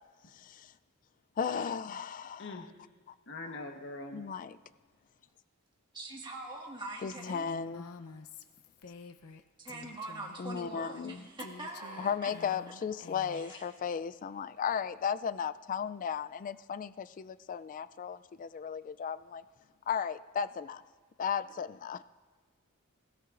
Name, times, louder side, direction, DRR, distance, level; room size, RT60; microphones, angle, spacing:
voice 1, 0.3-0.7 1.4-2.7 3.1-3.2 3.4-3.6 4.1-4.6 7.0-7.8 10.4-11.2 12.0-19.4 19.9-20.8 21.2-22.0, left 7 dB, 35° left, 15 dB, 0.3 m, -35 dB
voice 2, 3.3-4.2, left 2 dB, 60° left, 4 dB, 1.2 m, -42 dB
voice 3, 5.9-7.5 9.6-12.1 13.3-13.6, right 2 dB, 20° right, -2 dB, 1.8 m, -43 dB
Female speech woman speaking, 7.2-9.4 9.7-10.4 11.4-13.5, left 4 dB, 90° left, 0.7 m, -49 dB
21.0 x 16.5 x 2.5 m, 1.5 s
head